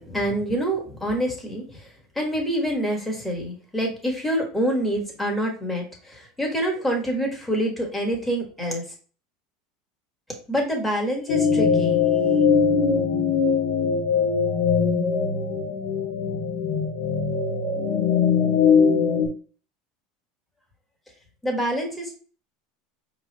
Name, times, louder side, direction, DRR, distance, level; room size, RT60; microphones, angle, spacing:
voice 1, 0.0-8.8 10.5-12.2 21.4-22.1, equal, 5° left, -1 dB, 1.5 m, -26 dB
sound 1, 11.3-19.3, left 6 dB, 65° left, 1.1 m, -21 dB
5.4 x 3.1 x 3.0 m, 0.40 s
supercardioid pair, 150°, 2 cm